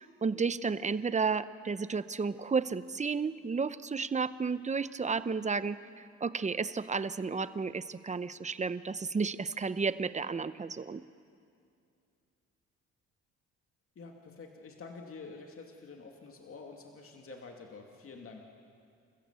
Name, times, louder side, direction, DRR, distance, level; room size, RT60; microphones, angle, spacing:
voice 1, 0.0-5.8 6.2-11.0, right 5 dB, 25° right, 14 dB, 0.8 m, -32 dB
voice 2, 14.0-18.4, left 4 dB, 45° left, 2 dB, 2.5 m, -48 dB
29.5 x 14.5 x 8.3 m, 2.4 s
cardioid pair, 90°, 30 cm